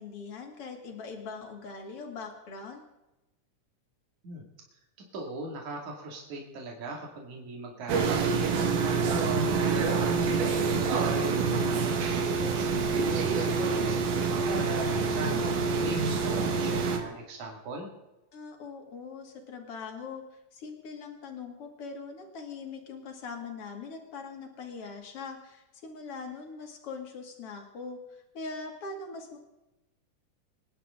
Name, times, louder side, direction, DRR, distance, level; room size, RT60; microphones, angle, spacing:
voice 1, 0.0-2.8 18.3-29.4, left 4 dB, 50° left, 3 dB, 3.1 m, -41 dB
voice 2, 5.1-9.8 10.4-15.5 15.8-17.9, right 2 dB, 65° right, 1 dB, 3.8 m, -41 dB
sound 1, 7.9-17.0, right 4 dB, 80° right, 3.1 m, -26 dB
25.5 x 11.0 x 3.8 m, 0.99 s
omnidirectional pair, 3.6 m